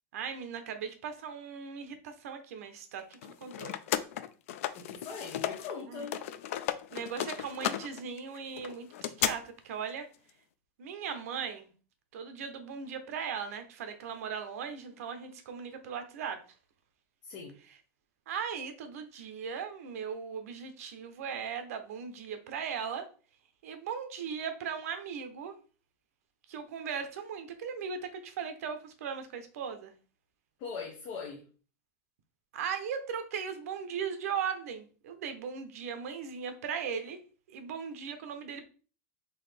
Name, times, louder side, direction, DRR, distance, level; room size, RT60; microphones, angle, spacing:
voice 1, 0.1-3.8 5.9-6.1 6.9-10.1 10.8-11.7 12.1-16.4 18.3-23.1 23.6-25.5 26.5-29.9 32.5-37.2 37.5-38.6, right 7 dB, 80° right, 0.8 m, -38 dB
sound 1, 3.1-5.7 6.0-9.3, left 12 dB, 65° left, 0.3 m, -34 dB
voice 2, 4.7-6.2 17.2-17.5 30.6-31.4, left 5 dB, 35° left, 0.7 m, -41 dB
4.0 x 2.7 x 3.3 m
supercardioid pair, 170°, 8 cm